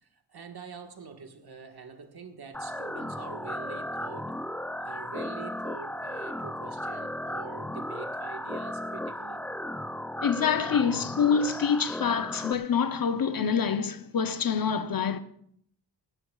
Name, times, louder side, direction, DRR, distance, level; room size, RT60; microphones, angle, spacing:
voice 1, 0.0-4.4 4.8-9.4, right 5 dB, 65° right, 1.6 m, -45 dB
sound 1, 2.5-12.5, left 1 dB, 5° left, 0.4 m, -35 dB
voice 2, 10.2-15.2, left 6 dB, 55° left, 0.8 m, -26 dB
19.0 x 15.5 x 2.4 m
wide cardioid pair, 110°, 41 cm